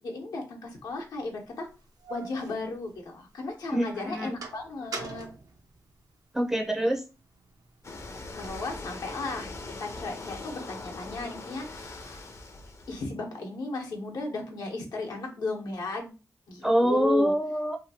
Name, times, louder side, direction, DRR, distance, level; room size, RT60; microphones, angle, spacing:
voice 1, 0.0-1.7 2.1-5.3 8.3-9.5 9.8-12.3 12.9-16.1 16.5-17.3, left 3 dB, 85° left, 1 dB, 0.9 m, -35 dB
sound 1, 0.9-1.0 1.6-3.5 3.9-6.5 6.9-8.7, right 3 dB, 75° right, 0.6 m, -43 dB
voice 2, 3.7-4.4 6.3-7.0 16.6-17.8, right 1 dB, 5° right, 1 dB, 0.5 m, -25 dB
sound 2, 7.8-13.1, left 3 dB, 45° left, 0.5 m, -41 dB
2.8 x 2.6 x 2.7 m, 0.32 s
cardioid pair, 60°, 7 cm